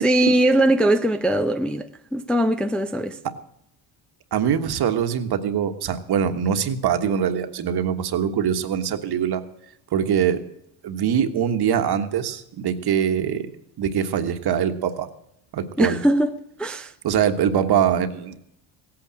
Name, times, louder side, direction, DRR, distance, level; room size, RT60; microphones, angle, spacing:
voice 1, 0.0-3.2 15.8-16.9, right 1 dB, ahead, 0.5 m, -21 dB
voice 2, 4.3-9.4 9.9-10.4 10.8-13.5 13.8-15.1 15.5-16.0 17.0-18.4, right 8 dB, 50° right, 1.4 m, -23 dB
17.0 x 8.8 x 7.5 m
cardioid pair, 115°, 48 cm